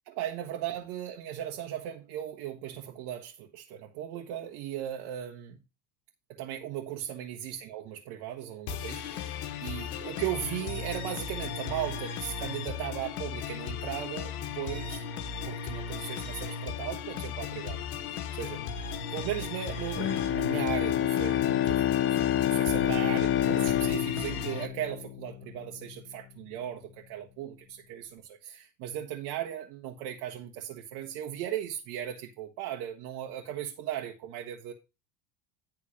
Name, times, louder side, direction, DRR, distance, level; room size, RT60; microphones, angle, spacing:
voice 1, 0.1-5.6 6.3-15.0 15.4-17.8 18.3-18.6 19.1-34.7, right 11 dB, 60° right, 1.4 m, -37 dB
sound 1, 8.7-24.7, left 6 dB, 90° left, 1.2 m, -36 dB
Bowed string instrument, 20.0-25.5, left 12 dB, 30° left, 0.6 m, -27 dB
10.0 x 3.7 x 6.3 m
supercardioid pair, 105°, 42 cm